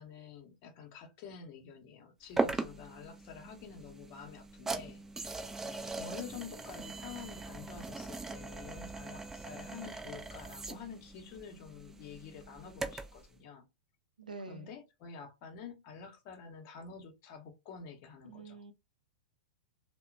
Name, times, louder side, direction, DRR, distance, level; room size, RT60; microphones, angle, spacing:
voice 1, 0.0-5.0 5.6-13.7 14.5-18.6, left 6 dB, 40° left, 0.7 m, -48 dB
sound 1, 2.4-13.2, right 3 dB, 10° right, 0.4 m, -40 dB
voice 2, 14.2-14.7 18.2-18.7, right 4 dB, 75° right, 0.5 m, -46 dB
2.8 x 2.1 x 2.4 m
figure-of-eight pair, 100°, 4 cm